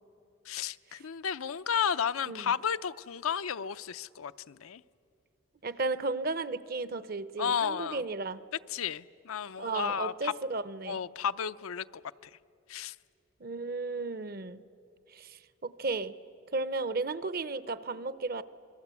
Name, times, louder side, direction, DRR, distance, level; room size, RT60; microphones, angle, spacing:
voice 1, 0.5-4.8 7.4-8.0 8.7-10.3 10.9-12.0 12.7-13.0, left 7 dB, 85° left, 13 dB, 0.5 m, -33 dB
voice 2, 5.6-8.4 9.6-11.0 13.4-14.6 15.1-16.1 16.5-18.4, right 3 dB, 45° right, 15 dB, 0.7 m, -34 dB
27.0 x 21.5 x 8.3 m, 2.7 s
head